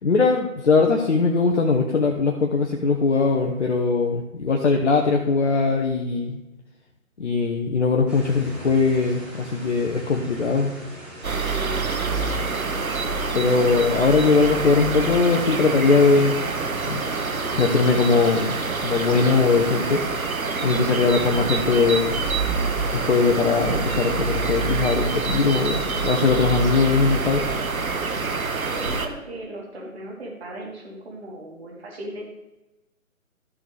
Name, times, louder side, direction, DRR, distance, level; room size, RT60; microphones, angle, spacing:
voice 1, 0.0-6.4 7.2-10.7 13.3-16.4 16.9-17.0 17.6-20.0 20.6-22.1 22.9-27.5, left 4 dB, 55° left, 1 dB, 1.2 m, -20 dB
sound 1, 8.1-24.9, right 1 dB, ahead, 0.9 m, -42 dB
sound 2, 11.2-29.1, right 4 dB, 75° right, 1.3 m, -26 dB
voice 2, 11.5-12.3 28.7-32.2, equal, 50° right, -2 dB, 3.5 m, -37 dB
13.5 x 6.3 x 3.4 m, 0.98 s
figure-of-eight pair, 145°, 42 cm